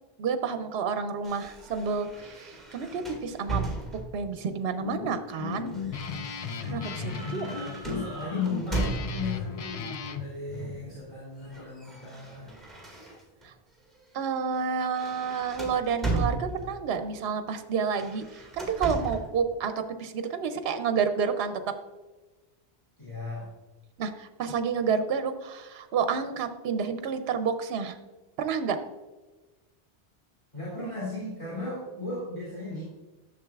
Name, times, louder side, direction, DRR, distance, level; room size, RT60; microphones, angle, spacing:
voice 1, 0.2-3.6 4.1-5.7 6.6-7.5 13.4-13.5 14.1-21.6 24.0-28.0 28.4-28.8, right 6 dB, 70° right, 8 dB, 0.8 m, -30 dB
sound 1, 1.2-4.3 5.3-9.5 10.5-10.9 11.2-13.5 13.9-14.2 14.5-16.9 17.8-19.3, right 3 dB, ahead, 1.8 m, -36 dB
sound 2, 2.8-3.0 6.6-8.5 11.4-11.7 12.9-13.2, right 2 dB, 90° left, 2.0 m, -46 dB
Guitar, 4.5-10.3, left 6 dB, 55° left, 0.4 m, -36 dB
voice 2, 7.2-12.5 23.0-23.5 30.5-32.8, left 3 dB, 25° left, -9 dB, 2.8 m, -36 dB
11.0 x 6.7 x 2.3 m, 1.2 s
omnidirectional pair, 1.1 m